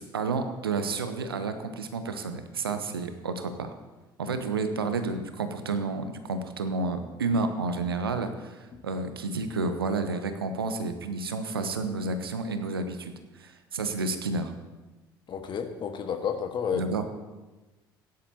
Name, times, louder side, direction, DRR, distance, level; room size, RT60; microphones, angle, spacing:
voice 1, 0.0-3.7 4.2-14.5 16.7-17.0, right 3 dB, 80° right, 8 dB, 0.9 m, -30 dB
voice 2, 15.3-16.9, left 7 dB, 40° left, 5 dB, 1.5 m, -31 dB
17.0 x 10.5 x 2.8 m, 1.2 s
figure-of-eight pair, 60°, 12 cm